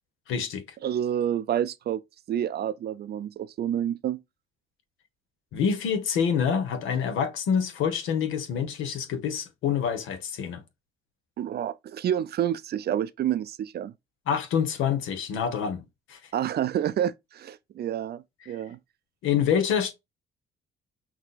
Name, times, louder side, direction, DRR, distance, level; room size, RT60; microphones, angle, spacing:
voice 1, 0.3-0.6 5.5-10.6 14.3-15.8 16.1-16.2 18.4-18.6 19.2-19.9, left 7 dB, 90° left, 1.1 m, -26 dB
voice 2, 0.8-2.0 2.3-4.2 11.4-13.9 16.3-18.8, right 10 dB, 55° right, 0.5 m, -28 dB
6.0 x 2.9 x 2.4 m
cardioid pair, 90°, 20 cm